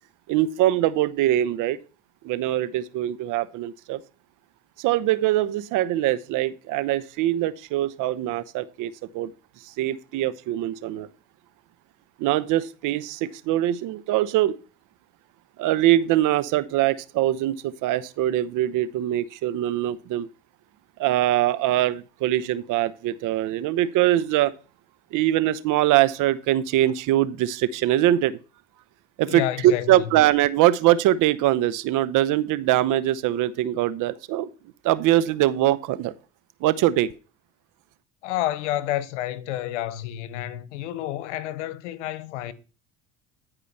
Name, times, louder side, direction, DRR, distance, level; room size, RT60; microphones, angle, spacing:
voice 1, 0.3-1.8 2.2-4.0 4.8-9.3 9.8-11.1 12.2-14.5 15.6-20.3 21.0-24.5 25.1-28.4 29.2-34.5 34.8-36.1 36.6-37.1, right 13 dB, 65° right, 0.9 m, -22 dB
voice 2, 29.3-30.0 38.2-42.5, left 13 dB, 85° left, 0.9 m, -29 dB
11.0 x 4.9 x 5.5 m
supercardioid pair, 80°, 34 cm